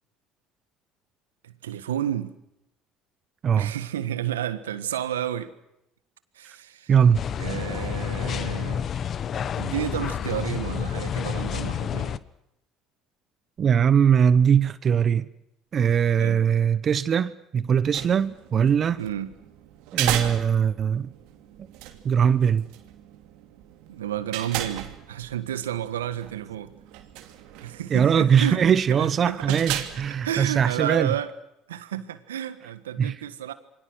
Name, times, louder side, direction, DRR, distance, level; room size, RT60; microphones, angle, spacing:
voice 1, 1.4-2.4 3.6-5.5 6.3-6.9 7.4-9.0 9.6-12.2 16.2-16.4 19.0-19.3 23.9-26.7 27.6-28.6 28.9-29.6 30.2-31.3 31.7-33.5, right 11 dB, 90° right, 1.6 m, -31 dB
voice 2, 6.9-7.2 13.6-15.3 15.7-19.0 19.9-21.1 21.6-21.7 22.0-22.7 27.9-31.1 33.0-33.2, right 7 dB, 45° right, 1.1 m, -21 dB
sound 1, 7.1-12.2, left 8 dB, 45° left, 1.1 m, -29 dB
sound 2, 17.7-31.1, right 12 dB, 70° right, 2.8 m, -37 dB
28.0 x 24.0 x 6.3 m
hypercardioid pair, 65°, 0 cm